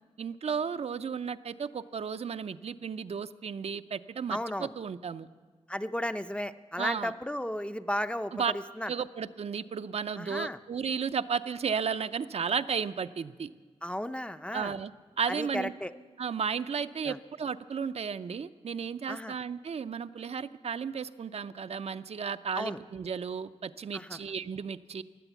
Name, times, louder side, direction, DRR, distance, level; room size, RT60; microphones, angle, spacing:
voice 1, 0.2-5.3 6.8-7.1 8.3-8.5 8.9-13.5 14.5-14.9 15.2-15.7 16.2-25.0, right 6 dB, 70° right, 12 dB, 0.5 m, -34 dB
voice 2, 4.3-4.7 5.7-8.9 10.2-10.6 13.8-14.8 15.3-15.9 17.1-17.2 19.1-19.3 22.6-22.8 23.9-24.2, equal, 10° left, 11 dB, 0.5 m, -34 dB
16.0 x 11.0 x 8.2 m, 1.5 s
wide cardioid pair, 90°, 11 cm